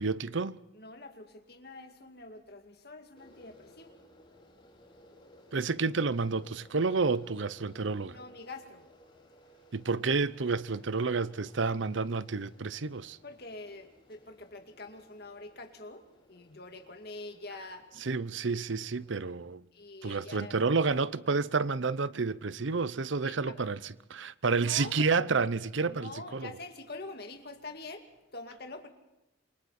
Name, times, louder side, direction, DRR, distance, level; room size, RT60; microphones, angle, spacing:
voice 1, 0.0-0.6 5.5-8.2 9.7-13.2 18.0-19.6 20.0-26.5, right 4 dB, 70° right, 0.8 m, -30 dB
voice 2, 0.7-4.0 8.1-8.8 13.2-17.8 18.5-18.9 19.7-20.5 23.2-23.6 24.5-25.1 25.9-28.0 28.3-28.9, left 2 dB, 50° left, 2.5 m, -45 dB
sound 1, 3.1-19.3, left 1 dB, 25° left, 4.3 m, -60 dB
28.0 x 23.5 x 4.3 m
head